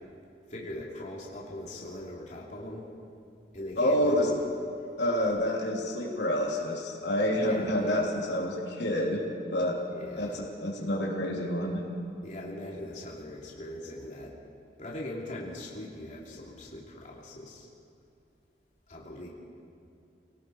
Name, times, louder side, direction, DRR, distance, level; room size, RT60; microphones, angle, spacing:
voice 1, 0.5-2.9 3.5-4.4 4.8-4.9 7.4-8.1 9.9-10.4 12.2-14.4 14.8-17.7 18.9-19.3, left 1 dB, 45° left, -4 dB, 3.1 m, -40 dB
voice 2, 3.8-4.3 5.0-9.8 10.2-11.8, left 1 dB, 80° left, -2 dB, 3.4 m, -28 dB
29.0 x 18.5 x 4.8 m, 2.7 s
head